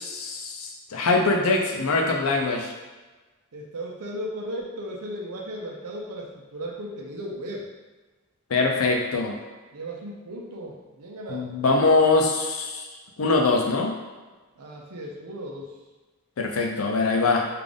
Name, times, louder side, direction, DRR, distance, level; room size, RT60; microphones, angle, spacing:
voice 1, 0.0-2.7 8.5-9.4 11.3-12.8 13.2-13.9 16.4-17.5, left 3 dB, 70° left, 1 dB, 0.5 m, -23 dB
voice 2, 3.5-7.7 9.7-11.5 14.6-15.7, equal, 90° right, -2 dB, 0.6 m, -36 dB
3.7 x 2.5 x 3.4 m, 1.2 s
head